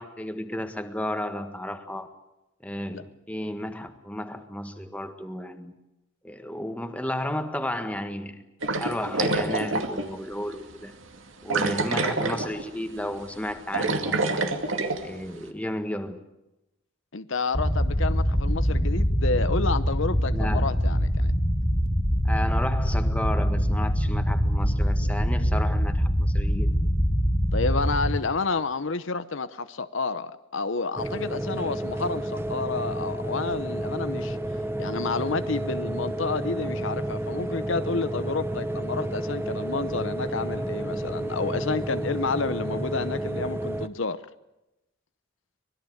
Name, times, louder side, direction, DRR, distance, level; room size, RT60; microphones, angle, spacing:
voice 1, 0.0-2.1 2.6-5.7 6.2-8.4 8.8-10.9 11.4-14.6 15.0-16.2 20.3-20.8 22.2-26.8, left 1 dB, 5° left, 1.6 m, -33 dB
sound 1, 8.6-10.1 10.5-10.6 11.5-12.7 13.0-13.2 13.5-15.0, right 3 dB, 75° right, 2.3 m, -26 dB
voice 2, 17.1-21.3 27.5-34.4 34.8-44.2, left 4 dB, 70° left, 0.9 m, -30 dB
sound 2, 17.5-28.1, equal, 25° left, 2.5 m, -24 dB
sound 3, 31.0-43.9, right 1 dB, 10° right, 0.9 m, -31 dB
25.0 x 21.0 x 8.0 m
head